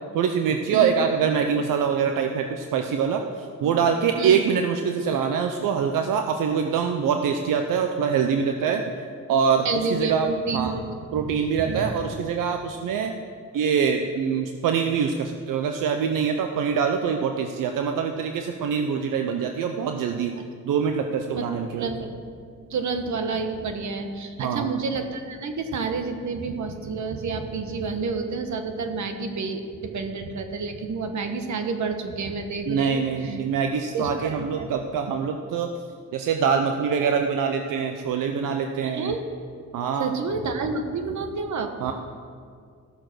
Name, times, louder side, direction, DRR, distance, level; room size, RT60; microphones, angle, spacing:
voice 1, 0.1-8.8 9.3-10.3 10.5-10.7 11.1-13.1 13.5-20.3 20.6-21.9 24.4-24.7 32.7-35.7 36.1-39.1 39.7-40.2 41.8-41.9, right 6 dB, 85° right, 5 dB, 0.7 m, -24 dB
voice 2, 9.6-10.8 11.2-11.9 21.3-21.5 21.7-22.2 22.7-33.4 33.9-34.7 38.8-39.2 40.0-41.7, right 4 dB, 65° right, 6 dB, 1.3 m, -29 dB
14.5 x 6.6 x 6.1 m, 2.1 s
cardioid pair, 85°, 31 cm